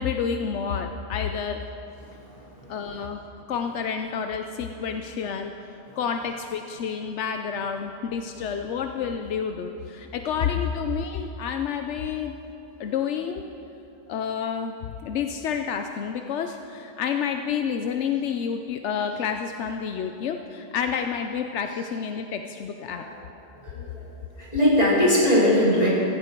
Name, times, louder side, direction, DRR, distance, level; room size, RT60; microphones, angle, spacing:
voice 1, 0.0-1.6 2.7-3.2 3.5-5.5 6.0-12.4 12.8-13.4 14.1-14.8 15.0-23.0, left 7 dB, 85° left, 6 dB, 1.0 m, -29 dB
voice 2, 23.5-24.1 24.4-25.9, left 1 dB, 35° left, -8 dB, 4.5 m, -21 dB
16.0 x 15.0 x 4.5 m, 2.8 s
omnidirectional pair, 1.2 m